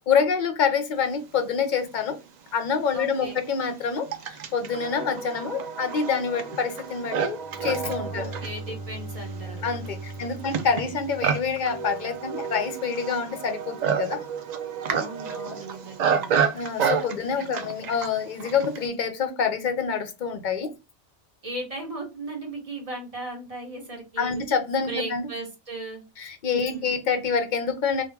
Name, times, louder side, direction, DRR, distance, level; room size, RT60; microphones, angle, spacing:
voice 1, 0.1-2.2 2.5-8.3 9.6-14.2 16.5-20.7 24.2-25.3 26.2-28.0, left 6 dB, 55° left, 0.6 m, -27 dB
Livestock farm animals working animals, 2.1-2.2 3.0-18.9, right 7 dB, 55° right, 0.5 m, -30 dB
voice 2, 2.9-3.4 8.1-9.6 10.2-11.0 14.9-16.3 17.4-17.7 21.4-24.4 24.9-26.1 26.6-26.9, right 2 dB, 35° right, 1.2 m, -37 dB
Bowed string instrument, 7.2-12.2, right 3 dB, 15° left, 0.6 m, -39 dB
2.9 x 2.3 x 3.4 m
omnidirectional pair, 1.2 m